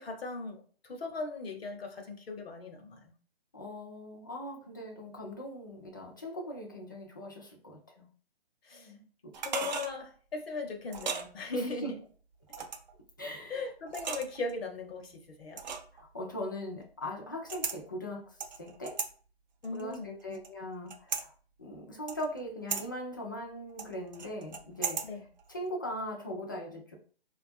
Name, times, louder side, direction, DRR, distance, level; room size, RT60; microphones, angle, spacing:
voice 1, 0.0-3.1 8.6-8.9 9.4-12.0 13.5-15.6 19.6-20.2 25.0-25.2, left 3 dB, 70° left, 0.9 m, -38 dB
voice 2, 3.5-8.1 8.7-9.3 9.6-9.7 11.5-11.9 12.6-12.7 13.2-13.6 15.9-19.0 19.7-21.3 21.6-25.0 25.5-27.0, left 1 dB, 20° left, 0.3 m, -40 dB
sound 1, 9.3-9.9 10.9-11.3 12.5-12.9 13.9-14.5 15.6-16.0 17.5-17.8 18.4-19.1 19.6-20.5 20.9-21.3 22.1-22.4 22.7-22.8 23.8-25.1 25.4-25.5, right 6 dB, 45° right, 0.5 m, -36 dB
4.1 x 2.3 x 2.6 m
figure-of-eight pair, 145°, 32 cm